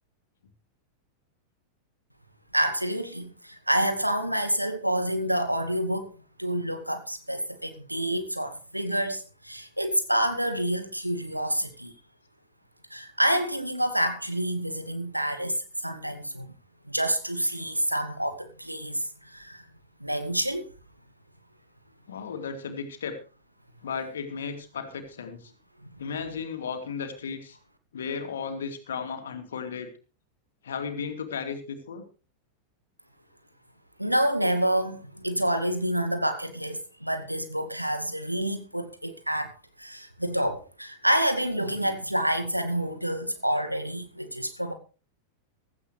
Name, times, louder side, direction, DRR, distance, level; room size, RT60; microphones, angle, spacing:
voice 1, 2.5-6.1 6.4-11.9 12.9-16.5 16.9-19.7 20.0-20.7 25.8-26.0 34.0-44.7, right 1 dB, 90° right, 2.1 m, -28 dB
voice 2, 22.1-23.2 23.8-25.5 26.0-27.6 27.9-29.9 30.6-32.0, left 6 dB, 65° left, 2.7 m, -35 dB
16.0 x 14.5 x 3.3 m
figure-of-eight pair, 90°, 0 cm